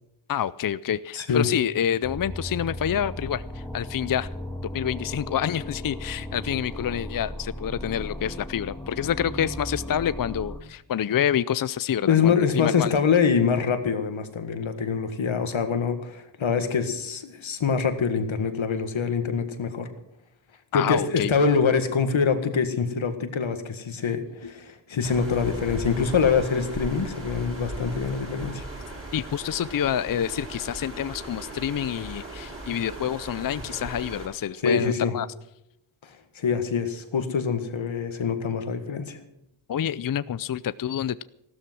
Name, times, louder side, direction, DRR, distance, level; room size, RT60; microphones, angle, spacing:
voice 1, 0.3-4.3 4.7-13.0 20.7-21.3 29.1-35.3 39.7-41.2, left 9 dB, 45° left, 16 dB, 0.5 m, -27 dB
voice 2, 1.1-1.5 12.1-19.9 20.7-28.6 34.6-35.1 36.4-39.2, left 6 dB, 85° left, 8 dB, 1.9 m, -24 dB
sound 1, 2.0-10.6, left 1 dB, 5° left, 2.0 m, -36 dB
sound 2, 25.0-34.3, right 2 dB, 30° right, 6.7 m, -38 dB
15.5 x 13.0 x 6.1 m, 0.83 s
wide cardioid pair, 90°, 46 cm